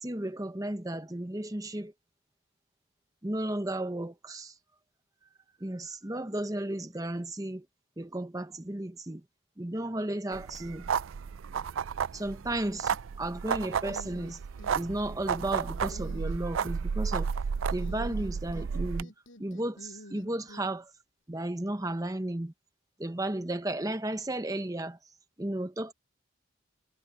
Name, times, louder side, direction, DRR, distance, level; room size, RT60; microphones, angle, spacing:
voice 1, 0.0-1.9 3.2-4.5 5.6-7.7 8.0-9.2 9.6-10.9 12.1-14.4 14.7-17.3 17.7-19.1 19.4-20.9 21.3-22.5 23.0-25.0 25.4-25.9, right 1 dB, 15° right, 0.9 m, -34 dB
sound 1, 10.3-19.0, right 6 dB, 75° right, 0.4 m, -32 dB
sound 2, 13.9-14.8 15.1-15.5 15.9-16.7 17.8-18.7 19.0-20.6, left 1 dB, 70° left, 7.8 m, -49 dB
head